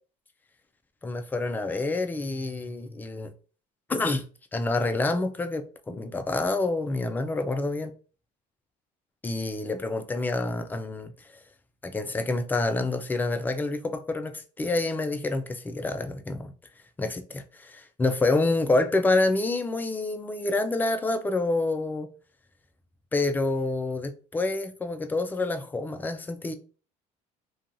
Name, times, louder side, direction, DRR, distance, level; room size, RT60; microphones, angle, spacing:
voice 1, 1.0-3.3 3.9-4.2 4.5-7.9 9.2-11.1 11.8-16.5 17.0-22.1 23.1-26.5, left 2 dB, 10° left, 0.3 m, -27 dB
2.7 x 2.3 x 2.5 m
cardioid pair, 115°, 15 cm